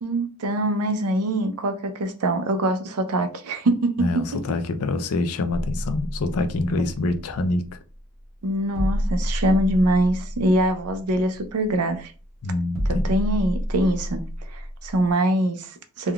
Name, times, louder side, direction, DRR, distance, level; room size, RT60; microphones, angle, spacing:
voice 1, 0.0-4.1 8.4-12.1 12.9-14.2 14.5-16.1, right 1 dB, 85° right, 0.5 m, -23 dB
voice 2, 4.0-7.7 12.4-13.0, left 2 dB, 75° left, 0.4 m, -25 dB
sound 1, 7.7-15.1, equal, 30° right, 1.3 m, -30 dB
3.5 x 2.3 x 2.2 m
head